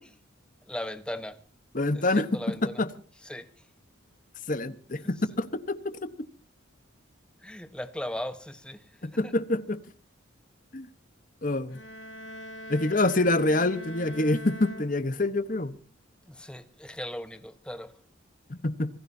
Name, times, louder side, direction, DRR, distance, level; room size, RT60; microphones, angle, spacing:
voice 1, 0.7-1.4 1.9-2.8 3.2-3.7 5.0-5.3 7.4-9.3 16.2-17.9, left 1 dB, 5° left, 10 dB, 1.1 m, -38 dB
voice 2, 1.7-2.9 4.5-6.1 9.0-9.8 10.7-10.9 11.4-11.8 12.7-15.7 18.6-18.9, left 2 dB, 40° left, 13 dB, 1.1 m, -26 dB
sound 1, 11.7-15.5, equal, 65° left, 3.6 m, -43 dB
26.5 x 17.0 x 2.8 m, 0.39 s
head